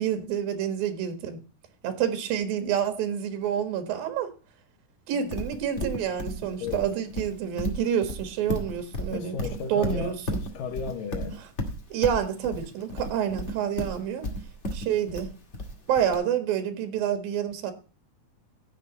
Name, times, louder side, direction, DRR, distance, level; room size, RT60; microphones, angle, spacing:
voice 1, 0.0-1.4 1.8-4.3 5.1-9.4 9.7-10.4 11.9-14.3 14.7-15.3 15.9-17.7, right 9 dB, 75° right, 3.4 m, -28 dB
Livestock farm animals working animals, 5.3-16.1, left 1 dB, 25° left, 1.6 m, -33 dB
voice 2, 9.1-10.1 10.5-11.4, left 5 dB, 70° left, 3.0 m, -34 dB
16.0 x 6.7 x 4.1 m
omnidirectional pair, 4.2 m